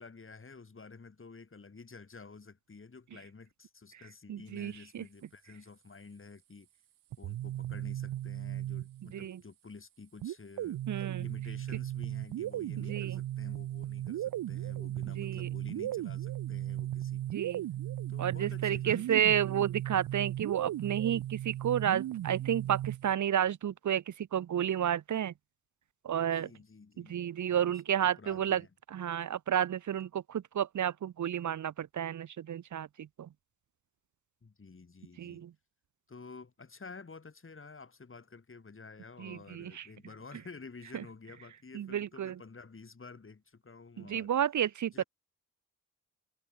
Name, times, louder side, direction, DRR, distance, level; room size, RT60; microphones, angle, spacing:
voice 1, 0.0-6.7 7.2-10.8 11.2-17.3 18.1-19.2 26.2-27.2 27.5-28.7 34.4-35.5 36.1-44.3 44.9-45.0, left 4 dB, 40° left, 4.4 m, -51 dB
voice 2, 4.3-5.0 9.1-9.4 10.9-11.3 12.9-13.2 15.2-15.5 17.3-17.7 18.2-25.3 26.0-26.5 27.0-28.6 28.9-33.3 35.2-35.5 39.2-39.9 40.9-41.0 41.7-42.3 44.0-45.0, right 10 dB, 60° right, 0.9 m, -31 dB
sound 1, 7.1-9.2 10.2-23.1, right 13 dB, 85° right, 1.5 m, -36 dB
supercardioid pair, 50°, 33 cm